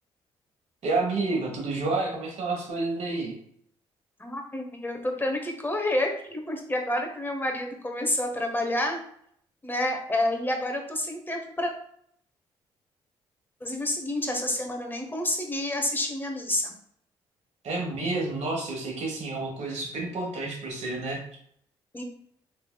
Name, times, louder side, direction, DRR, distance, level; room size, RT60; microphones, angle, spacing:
voice 1, 0.8-3.3 17.6-21.2, right 3 dB, 60° right, 0 dB, 1.2 m, -29 dB
voice 2, 4.2-9.0 9.6-11.7 13.6-16.7 21.9-22.0, left 1 dB, 15° left, 3 dB, 0.9 m, -29 dB
3.3 x 3.0 x 2.2 m, 0.66 s
hypercardioid pair, 45°, 13 cm